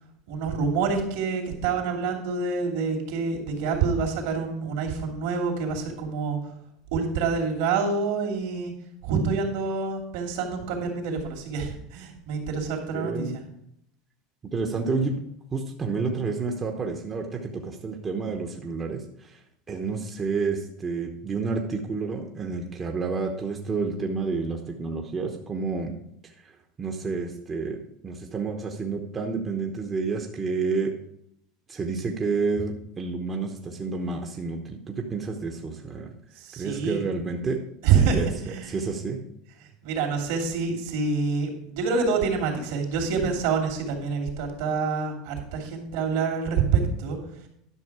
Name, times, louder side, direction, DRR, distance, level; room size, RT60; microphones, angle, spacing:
voice 1, 0.3-6.4 6.9-8.7 9.0-13.4 36.4-37.0 37.8-38.8 39.8-47.2, right 5 dB, 70° right, 1 dB, 2.7 m, -27 dB
voice 2, 12.9-13.4 14.4-15.2 15.5-19.4 19.7-25.9 26.8-30.9 31.7-36.1 36.6-37.6 38.0-38.3 38.7-39.2, right 4 dB, 20° right, 2 dB, 0.9 m, -29 dB
11.0 x 6.3 x 4.8 m, 0.75 s
supercardioid pair, 150°, 0 cm